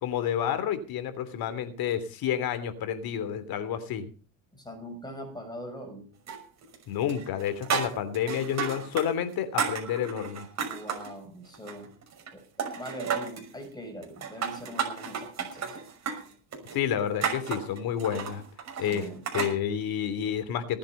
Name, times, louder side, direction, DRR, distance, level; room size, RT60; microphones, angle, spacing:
voice 1, 0.0-4.1 6.9-10.5 16.7-18.4 18.8-19.1 19.3-20.8, left 9 dB, 50° left, 10 dB, 3.1 m, -30 dB
voice 2, 4.5-6.1 10.6-11.9 12.3-15.8 18.8-19.2, equal, 10° left, 4 dB, 6.5 m, -42 dB
sound 1, 6.3-6.8 7.1-9.1 9.3-11.1 11.5-12.3 12.6-13.5 14.0-19.6, right 6 dB, 35° right, 5.8 m, -33 dB
19.0 x 9.0 x 5.4 m, 0.37 s
supercardioid pair, 110°, 46 cm